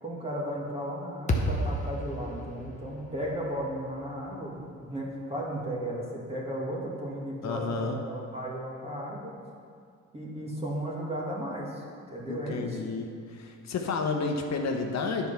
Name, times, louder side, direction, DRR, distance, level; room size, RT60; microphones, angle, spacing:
voice 1, 0.0-9.3 10.1-12.8, right 1 dB, 20° right, -3 dB, 2.0 m, -35 dB
sound 1, 1.3-5.6, equal, 25° left, 1.0 m, -34 dB
voice 2, 7.4-8.0 12.3-15.3, left 4 dB, 60° left, 3 dB, 0.9 m, -31 dB
10.0 x 4.6 x 5.6 m, 2.3 s
cardioid pair, 90°, 30 cm